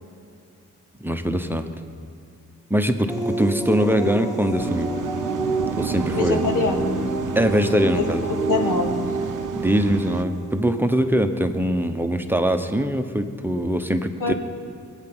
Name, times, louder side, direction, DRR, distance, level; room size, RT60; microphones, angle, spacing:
voice 1, 1.0-1.7 2.7-4.9 5.8-6.4 7.3-8.3 9.5-14.3, equal, 5° right, 7 dB, 0.9 m, -22 dB
sound 1, 3.1-11.4, right 2 dB, 10° left, 1.9 m, -29 dB
Waves surf, 4.6-10.2, right 8 dB, 80° right, 0.6 m, -31 dB
voice 2, 6.1-7.1 8.3-9.1 14.2-14.3, left 3 dB, 80° left, 4 dB, 1.6 m, -24 dB
21.5 x 9.0 x 6.1 m, 2.4 s
wide cardioid pair, 90°, 31 cm